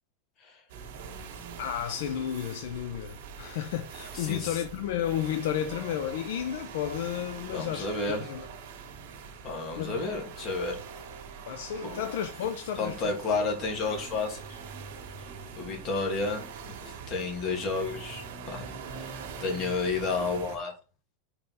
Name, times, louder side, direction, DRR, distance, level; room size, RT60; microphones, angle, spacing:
sound 1, 0.7-20.6, right 6 dB, 65° right, 1.6 m, -43 dB
voice 1, 1.6-7.9 8.3-8.5 9.8-10.0 11.5-13.2, left 10 dB, 70° left, 0.6 m, -32 dB
voice 2, 4.1-4.6 7.5-8.3 9.4-10.8 11.8-12.0 12.7-14.6 15.6-16.4 16.8-18.6 19.0-20.7, left 3 dB, 35° left, 2.5 m, -31 dB
4.9 x 4.7 x 4.1 m
supercardioid pair, 150°, 0 cm